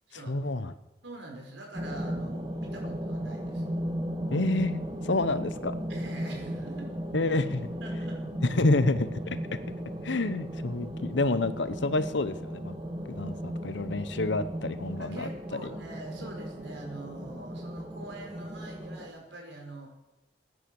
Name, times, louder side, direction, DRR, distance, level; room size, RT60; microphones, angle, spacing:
voice 1, 0.1-0.7 4.3-5.7 7.1-7.7 8.4-9.2 10.0-12.8 13.1-15.7, left 2 dB, 85° left, 13 dB, 1.0 m, -28 dB
voice 2, 1.0-3.7 5.9-6.9 7.8-8.3 15.0-19.9, right 2 dB, 90° right, 1 dB, 5.1 m, -44 dB
sound 1, 1.7-19.1, equal, 25° right, 2.0 m, -36 dB
17.0 x 9.8 x 7.8 m, 0.99 s
head